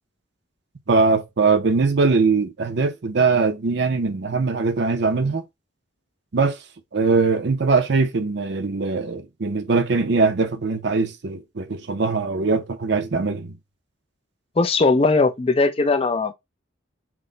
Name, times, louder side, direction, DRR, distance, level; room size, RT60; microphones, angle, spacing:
voice 1, 0.9-5.4 6.3-6.6 6.9-13.5, right 4 dB, 60° right, 0.6 m, -21 dB
voice 2, 14.6-16.3, left 3 dB, 30° left, 0.4 m, -19 dB
6.0 x 2.1 x 3.8 m
head